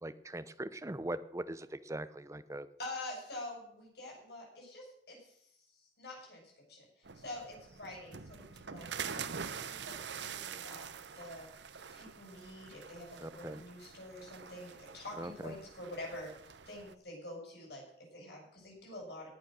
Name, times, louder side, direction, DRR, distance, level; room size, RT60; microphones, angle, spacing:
voice 1, 0.0-2.7 13.2-13.6 15.2-15.5, right 1 dB, 15° right, 13 dB, 0.8 m, -41 dB
voice 2, 2.8-5.4 5.7-6.9 7.1-10.9 11.1-11.5 11.9-16.3 16.7-19.3, left 1 dB, 60° left, -1 dB, 7.4 m, -47 dB
sound 1, 7.0-16.9, right 6 dB, 75° right, 0.9 m, -45 dB
18.5 x 8.4 x 6.5 m, 0.71 s
head